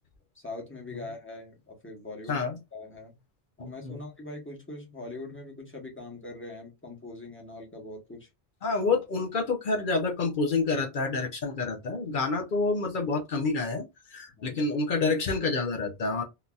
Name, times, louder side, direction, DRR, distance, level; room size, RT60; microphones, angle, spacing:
voice 1, 0.3-3.2 3.6-8.3 14.4-14.6, left 2 dB, 10° left, 0.9 m, -42 dB
voice 2, 3.6-4.0 8.6-13.8 14.1-16.2, left 3 dB, 60° left, 0.7 m, -28 dB
3.8 x 2.6 x 2.3 m
omnidirectional pair, 1.1 m